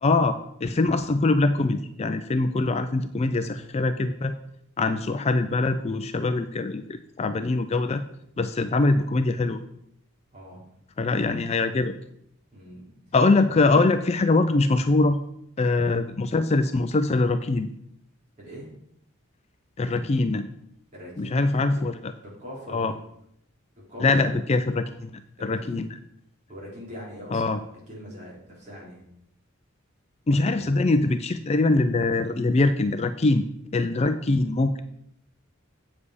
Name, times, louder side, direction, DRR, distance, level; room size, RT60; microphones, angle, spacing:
voice 1, 0.0-4.3 4.8-8.0 8.4-9.6 11.0-11.9 13.1-15.2 15.6-17.7 19.8-20.5 21.2-22.1 22.7-22.9 24.0-25.9 27.3-27.6 30.3-33.5 33.7-34.8, left 3 dB, 30° left, 9 dB, 0.4 m, -23 dB
voice 2, 10.3-10.7 12.5-13.0 18.4-18.7 20.9-22.9 23.9-24.4 25.4-25.8 26.5-27.6 27.9-29.0 30.3-30.8, equal, 35° right, -5 dB, 3.9 m, -42 dB
8.3 x 7.4 x 4.9 m, 0.73 s
head